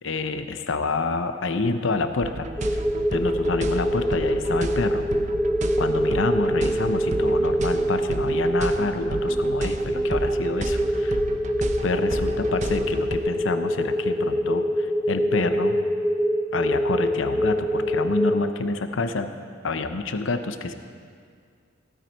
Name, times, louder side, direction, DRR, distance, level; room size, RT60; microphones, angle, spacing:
voice 1, 0.0-2.8 3.1-5.1 5.8-11.2 11.8-15.8 16.5-19.3 19.6-20.7, left 3 dB, 75° left, 9 dB, 0.7 m, -28 dB
sound 1, 2.2-13.2, right 1 dB, 35° right, 0.7 m, -33 dB
sound 2, 2.6-18.5, equal, ahead, 0.5 m, -24 dB
16.0 x 9.5 x 4.5 m, 2.1 s
head